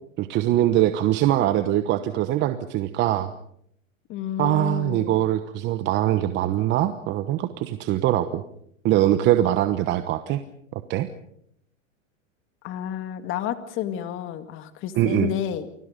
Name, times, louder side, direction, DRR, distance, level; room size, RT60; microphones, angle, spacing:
voice 1, 0.2-3.3 4.4-8.4 8.8-10.4 10.7-11.1 15.0-15.3, right 13 dB, 30° right, 10 dB, 1.1 m, -22 dB
voice 2, 4.1-5.2 12.6-15.7, left 10 dB, 30° left, 10 dB, 2.1 m, -30 dB
29.5 x 22.5 x 5.2 m, 0.68 s
hypercardioid pair, 135°, 39 cm